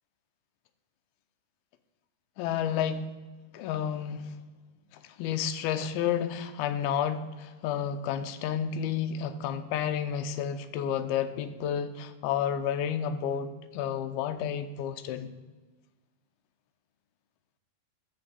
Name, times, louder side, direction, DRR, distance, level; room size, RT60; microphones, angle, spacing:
voice 1, 2.4-3.1 3.5-4.4 4.9-15.3, left 8 dB, 90° left, 2.5 m, -31 dB
13.0 x 4.6 x 7.3 m
omnidirectional pair, 4.4 m